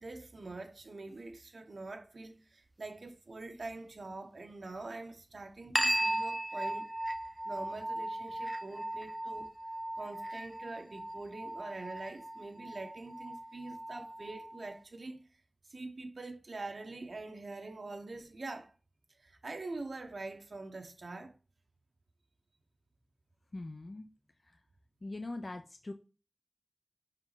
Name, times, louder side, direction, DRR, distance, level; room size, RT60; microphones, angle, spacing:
voice 1, 0.0-6.9 7.4-9.5 9.9-15.2 15.7-18.7 19.1-21.3, right 3 dB, 85° right, 0.9 m, -44 dB
sound 1, 5.8-14.8, right 1 dB, 15° right, 0.5 m, -37 dB
voice 2, 23.5-24.1 24.4-24.6 25.0-25.9, left 2 dB, 55° left, 0.6 m, -42 dB
5.9 x 4.5 x 3.9 m
wide cardioid pair, 70°, 0 cm